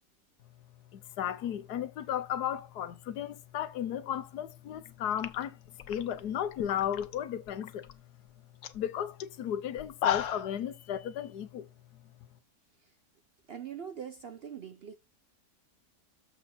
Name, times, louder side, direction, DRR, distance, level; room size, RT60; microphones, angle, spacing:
voice 1, 0.9-5.6 5.9-7.9 8.7-11.7, left 10 dB, 85° left, 1.3 m, -34 dB
sound 1, 4.8-4.9 5.2-7.2 7.5-7.9 8.3-8.4 8.6-8.8 9.2-9.3 9.8-10.6, left 10 dB, 60° left, 1.0 m, -35 dB
voice 2, 13.5-14.9, right 8 dB, 60° right, 0.6 m, -42 dB
7.1 x 6.0 x 4.2 m
omnidirectional pair, 1.7 m